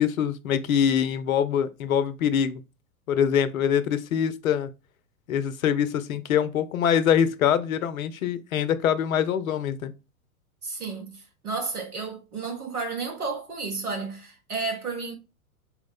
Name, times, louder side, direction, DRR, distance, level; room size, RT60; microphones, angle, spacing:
voice 1, 0.0-2.6 3.1-4.7 5.3-9.9, left 8 dB, 70° left, 0.6 m, -24 dB
voice 2, 10.6-15.1, right 4 dB, 85° right, 1.3 m, -32 dB
4.6 x 2.0 x 3.4 m
figure-of-eight pair, 100°, 44 cm